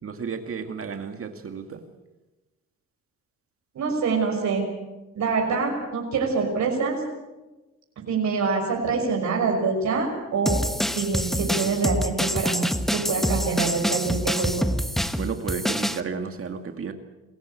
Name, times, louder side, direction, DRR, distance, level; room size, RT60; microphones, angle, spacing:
voice 1, 0.0-1.8 15.2-16.9, right 6 dB, 45° right, 6 dB, 2.2 m, -32 dB
voice 2, 3.7-4.7 5.1-7.0 8.1-10.6 10.9-14.5, right 4 dB, 65° right, 1 dB, 6.0 m, -25 dB
sound 1, 10.5-16.0, equal, ahead, 1.2 m, -26 dB
28.0 x 15.0 x 8.4 m, 1.1 s
cardioid pair, 90°, 30 cm